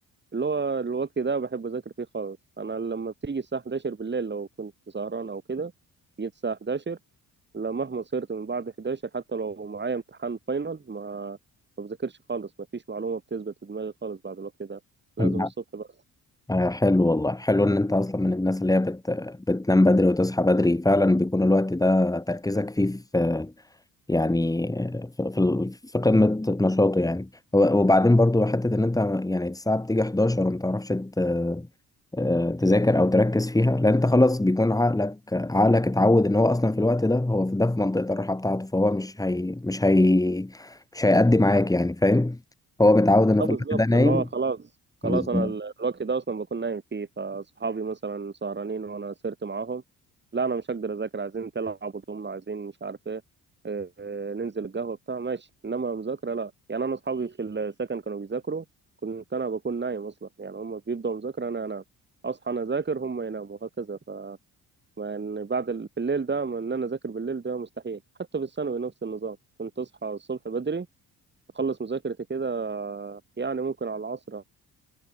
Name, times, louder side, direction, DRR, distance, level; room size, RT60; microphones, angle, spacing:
voice 1, 0.3-5.7 6.2-7.0 7.5-11.4 11.8-14.8 15.2-15.9 43.4-44.7 45.0-49.8 50.3-53.2 53.6-58.6 59.0-61.8 62.2-64.4 65.0-68.0 68.3-70.9 71.5-74.4, right 4 dB, 30° right, 5.0 m, -31 dB
voice 2, 15.2-15.5 16.5-23.5 24.1-31.7 32.1-42.4 42.8-44.2 45.0-45.5, left 2 dB, 10° left, 2.5 m, -22 dB
cardioid pair, 85°, 36 cm